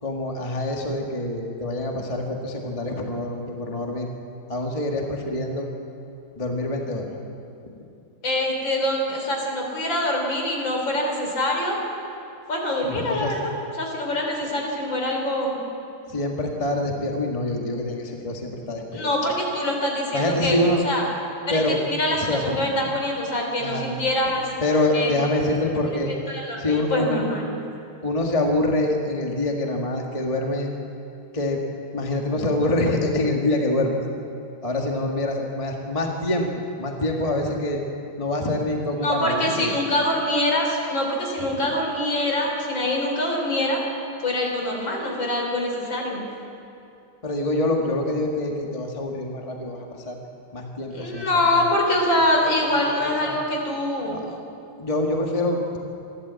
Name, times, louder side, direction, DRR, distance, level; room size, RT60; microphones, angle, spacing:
voice 1, 0.0-4.1 4.5-5.7 6.4-7.1 12.8-13.3 16.1-19.0 20.1-20.8 21.5-21.8 22.1-22.7 23.6-23.9 24.6-26.1 26.6-27.2 28.0-30.7 31.3-31.6 31.9-34.0 34.6-37.8 38.2-39.7 41.4-41.6 47.2-50.2 50.5-51.7 53.0-53.3 54.0-54.4 54.8-55.8, left 1 dB, 15° left, 1 dB, 1.6 m, -25 dB
voice 2, 8.2-11.8 12.5-15.6 18.9-20.6 20.8-21.0 21.5-24.5 24.9-25.1 25.9-27.4 39.0-43.8 44.2-46.2 50.9-54.2, left 1 dB, 60° left, 1 dB, 4.3 m, -24 dB
27.0 x 12.0 x 8.3 m, 2.7 s
omnidirectional pair, 2.3 m